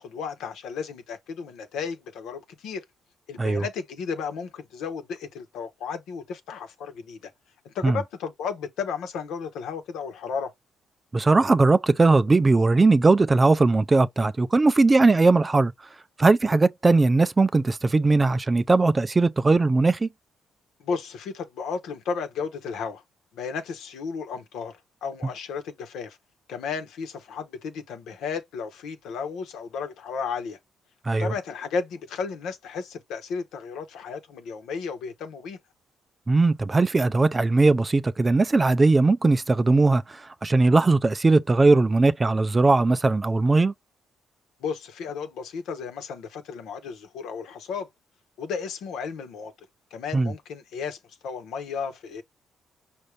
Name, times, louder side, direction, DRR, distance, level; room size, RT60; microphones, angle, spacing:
voice 1, 0.0-2.8 3.3-7.3 7.6-10.5 20.8-23.0 23.3-26.2 26.5-30.6 31.2-35.6 44.6-47.9 48.4-49.5 49.9-51.0 51.2-52.2, left 5 dB, 85° left, 1.2 m, -33 dB
voice 2, 11.1-15.7 16.2-20.1 31.1-31.3 36.3-43.7 50.1-50.3, right 3 dB, 25° right, 0.4 m, -19 dB
5.3 x 2.6 x 3.3 m
cardioid pair, 90°, 0 cm